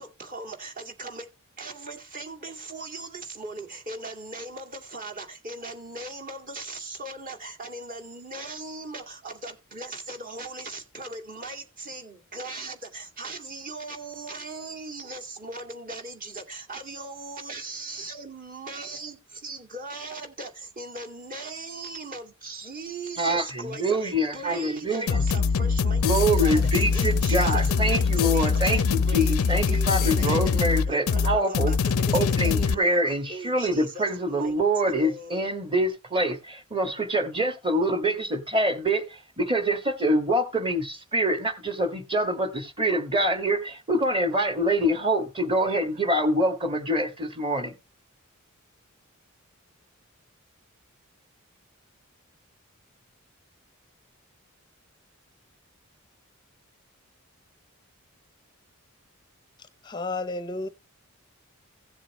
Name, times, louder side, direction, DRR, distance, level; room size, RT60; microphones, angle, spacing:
voice 1, 0.0-1.3 1.6-32.2 32.4-33.0 33.3-35.5, right 3 dB, 40° right, 2.3 m, -39 dB
voice 2, 23.2-25.2 26.0-31.7 32.1-47.7, right 1 dB, 25° right, 1.7 m, -25 dB
sound 1, 25.1-32.7, left 5 dB, 75° left, 0.4 m, -23 dB
voice 3, 59.8-60.7, left 3 dB, 20° left, 0.6 m, -31 dB
16.0 x 7.3 x 3.0 m
head